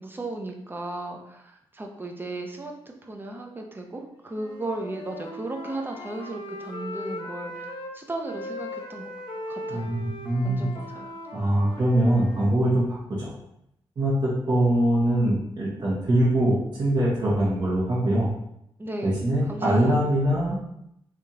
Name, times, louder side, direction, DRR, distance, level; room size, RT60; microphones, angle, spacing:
voice 1, 0.0-9.1 9.5-9.9 10.4-11.1 18.8-20.0, right 2 dB, 20° right, 2 dB, 0.7 m, -35 dB
Wind instrument woodwind instrument, 4.3-7.9 8.3-12.5, left 1 dB, 65° left, 0.7 m, -39 dB
voice 2, 9.7-10.6 11.3-13.3 14.0-18.3 19.0-20.6, right 1 dB, 50° right, -8 dB, 1.2 m, -23 dB
3.5 x 3.5 x 2.8 m, 0.78 s
cardioid pair, 80°, 9 cm